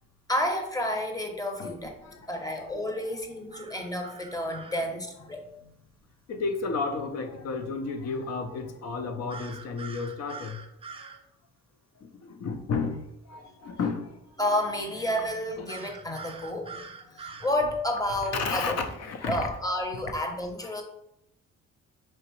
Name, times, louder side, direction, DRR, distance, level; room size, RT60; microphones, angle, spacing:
voice 1, 0.3-1.9 2.3-5.4 13.4-13.5 14.4-16.9 17.1-18.7 19.2-20.8, left 1 dB, 10° left, 3 dB, 0.8 m, -30 dB
voice 2, 2.0-3.2 5.6-5.7 6.3-10.6 12.0-14.2 15.6-15.8 17.1-17.2 18.3-19.5, left 4 dB, 55° left, 6 dB, 0.7 m, -33 dB
sound 1, 3.5-4.9 9.3-11.2 15.7-17.6, right 5 dB, 20° right, 0.4 m, -44 dB
4.6 x 2.9 x 3.1 m, 0.81 s
cardioid pair, 90°, 30 cm